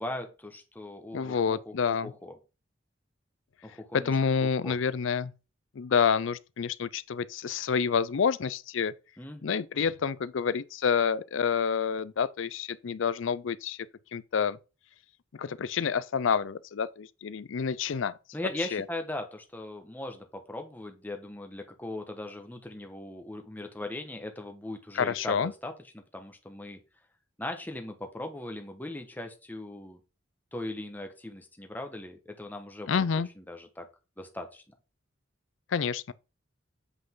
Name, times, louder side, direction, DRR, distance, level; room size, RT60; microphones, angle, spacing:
voice 1, 0.0-2.3 3.6-4.1 4.6-4.8 9.2-9.5 18.3-26.8 27.4-30.0 30.5-33.1 33.4-33.9 34.2-34.6, left 1 dB, 10° left, 1.2 m, -39 dB
voice 2, 1.1-2.1 3.9-5.3 5.8-8.9 9.4-13.9 14.1-14.6 15.3-18.2 18.7-18.8 24.9-25.5 32.9-33.3 35.7-36.1, left 6 dB, 75° left, 0.5 m, -28 dB
8.3 x 5.2 x 3.7 m
head